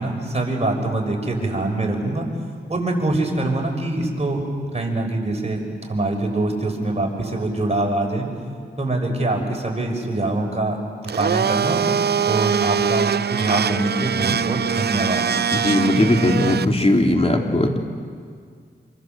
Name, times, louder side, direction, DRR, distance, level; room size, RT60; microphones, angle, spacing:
voice 1, 0.0-2.3 2.7-4.4 4.7-5.6 5.9-8.3 8.8-10.8 11.2-11.9 12.2-15.3, right 2 dB, 35° right, 1 dB, 6.3 m, -24 dB
Domestic sounds home sounds, 11.1-16.6, right 7 dB, 60° right, 0.6 m, -22 dB
voice 2, 15.5-17.8, left 1 dB, 30° left, 2 dB, 3.6 m, -18 dB
26.5 x 24.5 x 7.8 m, 2.1 s
cardioid pair, 50°, 19 cm